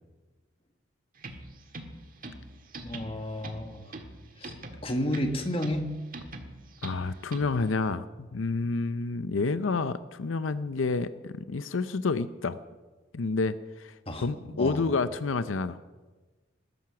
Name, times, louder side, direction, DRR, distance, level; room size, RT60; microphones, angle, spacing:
sound 1, 1.2-7.7, right 2 dB, 45° right, 1.6 m, -44 dB
voice 1, 2.8-3.9 4.4-4.5 4.8-5.9 14.1-14.8, left 1 dB, 30° left, 5 dB, 1.5 m, -32 dB
voice 2, 6.8-12.6 13.1-13.9 14.2-15.8, left 4 dB, 85° left, 13 dB, 0.6 m, -29 dB
20.0 x 12.5 x 5.8 m, 1.3 s
head